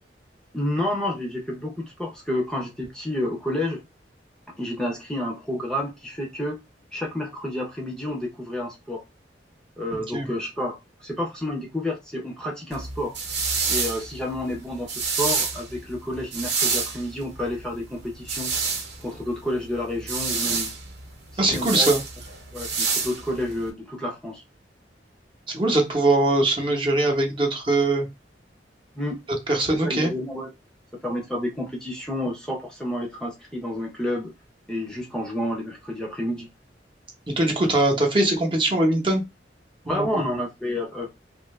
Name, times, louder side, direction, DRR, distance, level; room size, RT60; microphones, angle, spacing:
voice 1, 0.5-3.8 4.6-6.6 6.9-9.0 9.8-13.2 13.7-18.5 19.0-20.7 21.3-21.9 22.5-24.4 29.0-29.2 29.7-30.5 31.0-34.3 34.7-36.5 39.9-41.1, left 1 dB, 5° left, 0.7 m, -30 dB
sound 1, 12.7-23.7, right 5 dB, 70° right, 1.1 m, -28 dB
voice 2, 21.4-22.0 25.5-28.1 29.5-30.1 37.3-39.2 39.9-40.3, right 2 dB, 30° right, 0.9 m, -21 dB
2.7 x 2.6 x 3.1 m
head